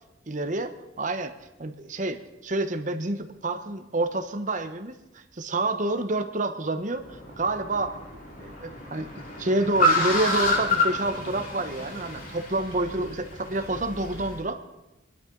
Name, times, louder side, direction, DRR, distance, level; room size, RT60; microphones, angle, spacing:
voice 1, 0.3-1.3 1.6-8.0 8.4-14.6, right 2 dB, 40° right, 7 dB, 1.0 m, -28 dB
Car, 7.0-14.4, left 1 dB, 45° left, 2.5 m, -29 dB
24.0 x 11.5 x 3.9 m, 0.99 s
head